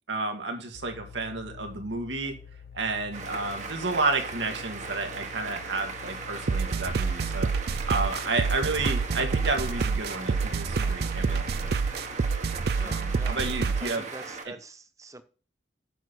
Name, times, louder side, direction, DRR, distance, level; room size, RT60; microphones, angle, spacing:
voice 1, 0.1-2.4 2.7-7.5 7.8-11.7 12.8-14.1 14.4-14.5, right 3 dB, 85° right, 4 dB, 2.0 m, -31 dB
sound 1, 0.7-12.2, left 6 dB, 55° left, 0.7 m, -47 dB
sound 2, 3.1-14.4, right 4 dB, 40° right, 1.3 m, -38 dB
sound 3, 6.5-14.0, right 5 dB, 60° right, 0.4 m, -28 dB
voice 2, 12.8-15.2, right 2 dB, 20° right, 12 dB, 0.7 m, -45 dB
9.1 x 6.3 x 4.1 m, 0.38 s
head